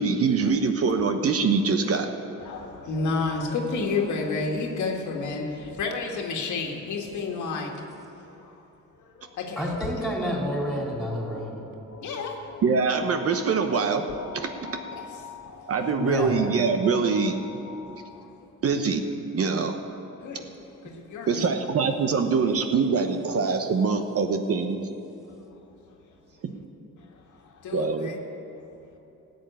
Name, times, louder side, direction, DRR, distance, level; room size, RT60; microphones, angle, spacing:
voice 1, 0.0-2.1 12.6-14.0 14.3-14.8 15.7-17.4 18.6-19.0 19.3-19.8 21.3-24.8 26.4-26.5 27.7-28.1, right 5 dB, 50° right, 6 dB, 1.0 m, -24 dB
voice 2, 2.4-7.8 8.2-8.6 9.0-9.7 12.0-12.4 15.0-15.1 15.5-15.9 18.1-18.3 20.2-20.5 20.8-21.5 27.3-28.2, left 4 dB, 75° left, 1 dB, 1.9 m, -31 dB
voice 3, 9.6-11.6 15.9-16.4, equal, ahead, -2 dB, 4.0 m, -29 dB
sound 1, 9.7-18.4, left 6 dB, 55° left, 1.3 m, -44 dB
13.5 x 8.0 x 9.2 m, 2.9 s
cardioid pair, 90°, 30 cm